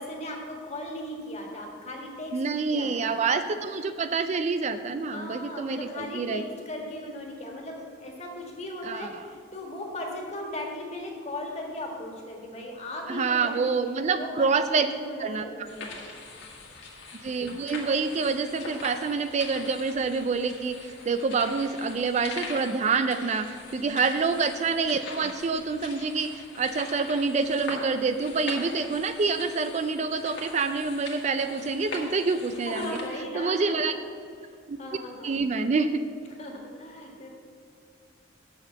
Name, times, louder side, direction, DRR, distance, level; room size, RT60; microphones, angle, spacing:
voice 1, 0.0-3.2 5.1-13.8 14.1-16.0 23.7-24.0 32.6-33.9 34.8-35.4 36.4-37.3, left 1 dB, 35° left, 0 dB, 1.7 m, -37 dB
voice 2, 2.3-6.4 8.8-9.2 13.1-14.9 15.2-15.7 17.2-33.0 33.3-33.9 34.7-34.8 35.2-36.0, right 4 dB, 35° right, 10 dB, 0.3 m, -27 dB
sound 1, 15.7-33.1, left 3 dB, 65° left, 1.7 m, -42 dB
7.0 x 6.8 x 7.8 m, 2.3 s
head